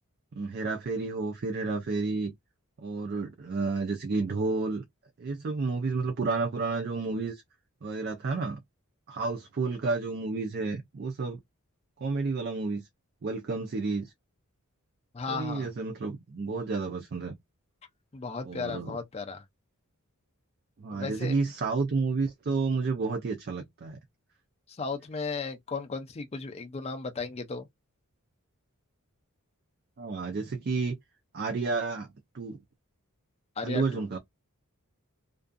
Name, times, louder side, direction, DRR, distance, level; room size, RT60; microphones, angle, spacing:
voice 1, 0.3-2.3 2.8-4.8 5.2-7.4 7.8-8.6 9.1-11.4 12.0-12.9 13.2-14.1 15.3-17.3 18.4-19.0 20.8-24.0 30.0-31.0 31.3-32.1 32.3-32.6 33.6-34.2, right 3 dB, 45° right, 0.4 m, -31 dB
voice 2, 15.1-15.7 18.1-19.4 20.9-21.4 24.7-27.7 33.6-34.0, left 4 dB, 30° left, 0.4 m, -35 dB
2.6 x 2.3 x 2.4 m
head